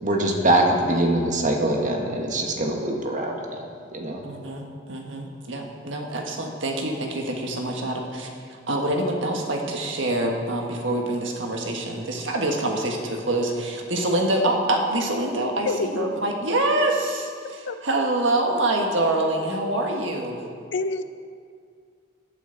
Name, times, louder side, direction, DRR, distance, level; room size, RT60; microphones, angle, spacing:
voice 1, 0.0-3.6 3.9-4.2, right 1 dB, 40° right, 1 dB, 1.4 m, -23 dB
voice 2, 4.2-20.4, right 1 dB, 70° right, 1 dB, 1.6 m, -26 dB
voice 3, 15.7-16.1 16.5-16.6 17.7-17.8 20.7-21.0, left 3 dB, 65° left, 10 dB, 0.6 m, -27 dB
15.0 x 9.2 x 4.0 m, 2.2 s
head